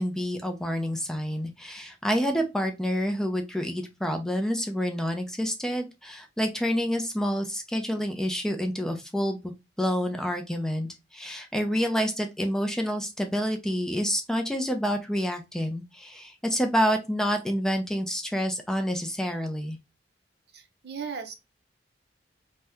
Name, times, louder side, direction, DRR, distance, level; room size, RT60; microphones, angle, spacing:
voice 1, 0.0-9.4 9.8-19.8, equal, 5° left, 0.4 m, -28 dB
voice 2, 20.5-21.3, right 6 dB, 65° right, 0.6 m, -37 dB
2.8 x 2.1 x 3.5 m
head